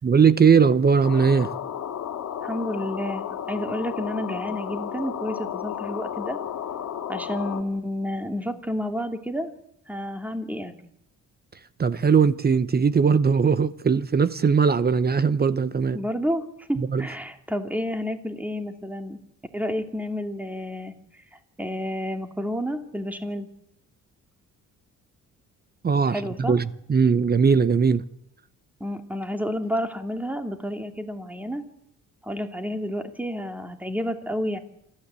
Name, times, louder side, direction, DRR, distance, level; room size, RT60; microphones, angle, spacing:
voice 1, 0.0-1.5 11.8-16.0 16.8-17.1 25.8-28.0, right 6 dB, 30° right, 0.9 m, -20 dB
sound 1, 1.0-7.6, left 9 dB, 65° left, 2.3 m, -33 dB
voice 2, 2.4-6.4 7.1-9.5 9.9-10.7 15.9-19.2 19.5-20.9 21.6-23.5 26.1-26.6 28.8-31.6 32.2-34.6, equal, 5° right, 2.7 m, -30 dB
27.0 x 13.5 x 8.3 m
cardioid pair, 90°, 30 cm